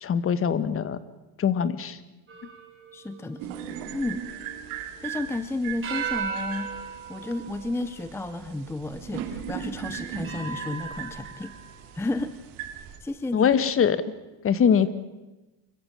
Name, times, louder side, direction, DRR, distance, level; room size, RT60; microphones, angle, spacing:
voice 1, 0.0-1.0 1.4-2.0 13.3-14.0 14.4-14.9, left 7 dB, 30° left, 15 dB, 1.1 m, -22 dB
sound 1, 2.3-5.2 5.8-8.6 9.2-9.3 10.2-11.8, right 6 dB, 30° right, 5.1 m, -37 dB
voice 2, 2.9-3.4 3.9-4.3 5.0-11.5 11.9-12.3 13.0-13.5, left 2 dB, 5° left, 12 dB, 0.6 m, -32 dB
sound 2, 3.4-13.0, right 9 dB, 90° right, 2.7 m, -39 dB
24.5 x 15.0 x 8.6 m, 1.1 s
cardioid pair, 145°, 44 cm